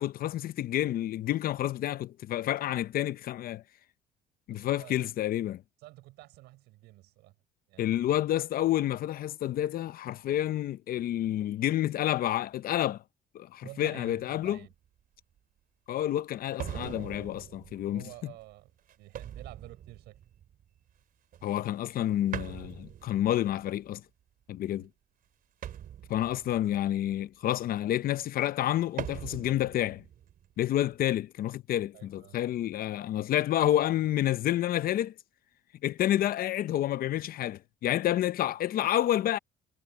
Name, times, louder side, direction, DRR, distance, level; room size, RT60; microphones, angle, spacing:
voice 1, 0.0-3.6 4.5-5.6 7.8-13.0 13.3-14.6 15.9-18.3 21.4-24.0 24.5-24.9 26.1-30.0 30.6-35.1 35.8-39.4, left 12 dB, 60° left, 0.8 m, -29 dB
voice 2, 4.5-5.1 5.8-7.3 7.7-7.9 13.6-14.7 17.9-20.2 24.6-24.9 31.9-32.4, right 18 dB, 90° right, 6.5 m, -50 dB
sound 1, 14.1-14.7 15.4-15.5 16.6-20.9 21.3-22.0 22.3-23.9 25.6-27.3 29.0-31.0, right 10 dB, 60° right, 3.3 m, -42 dB
cardioid pair, 110°, 17 cm